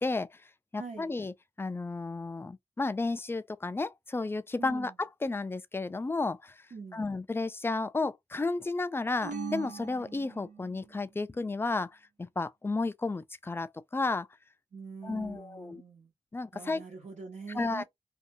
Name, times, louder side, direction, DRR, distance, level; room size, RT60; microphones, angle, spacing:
voice 1, 0.0-0.4 0.7-6.6 6.9-11.9 12.2-14.3 15.0-15.8 16.3-16.8 17.5-17.8, left 3 dB, 20° left, 0.4 m, -32 dB
voice 2, 0.8-1.1 4.6-5.0 6.7-7.1 14.7-16.1 16.5-17.8, right 4 dB, 70° right, 1.2 m, -44 dB
sound 1, 9.2-10.9, right 5 dB, 90° right, 0.9 m, -40 dB
2.7 x 2.3 x 2.6 m
cardioid pair, 60°, 12 cm